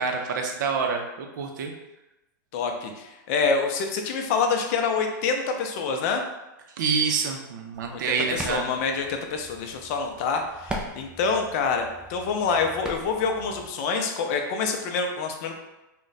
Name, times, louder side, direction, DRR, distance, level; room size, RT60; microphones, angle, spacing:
voice 1, 0.0-1.7 6.8-8.7, right 5 dB, 65° right, 3 dB, 0.5 m, -27 dB
voice 2, 2.5-6.2 7.9-8.0 8.3-15.5, left 5 dB, 45° left, 3 dB, 0.5 m, -26 dB
sound 1, 7.7-13.7, right 1 dB, 5° right, 0.3 m, -40 dB
2.4 x 2.1 x 4.0 m, 0.98 s
supercardioid pair, 145°, 11 cm